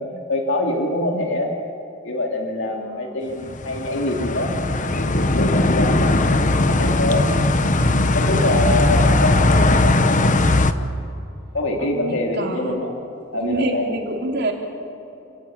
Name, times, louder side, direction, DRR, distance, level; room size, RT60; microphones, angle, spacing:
voice 1, 0.0-1.5 2.0-4.5 5.0-7.3 8.1-10.3 11.5-12.9 13.3-13.9, left 1 dB, 65° left, 1 dB, 2.9 m, -25 dB
voice 2, 2.6-3.3 11.8-12.8 13.3-14.5, right 2 dB, 55° right, 1 dB, 3.4 m, -27 dB
sound 1, 3.5-10.7, left 2 dB, 40° left, 1.1 m, -18 dB
29.0 x 17.0 x 8.9 m, 2.7 s
head